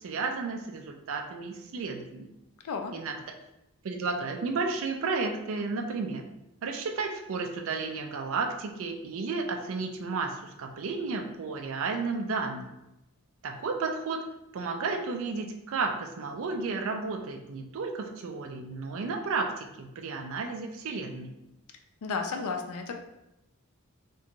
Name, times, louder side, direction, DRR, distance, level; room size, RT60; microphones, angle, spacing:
voice 1, 0.0-2.3 2.9-3.1 3.8-6.2 6.6-12.7 13.4-14.2 14.5-21.3, right 4 dB, 60° right, 4 dB, 0.4 m, -32 dB
voice 2, 22.0-22.9, left 4 dB, 70° left, 4 dB, 0.4 m, -32 dB
2.5 x 2.2 x 2.8 m, 0.89 s
head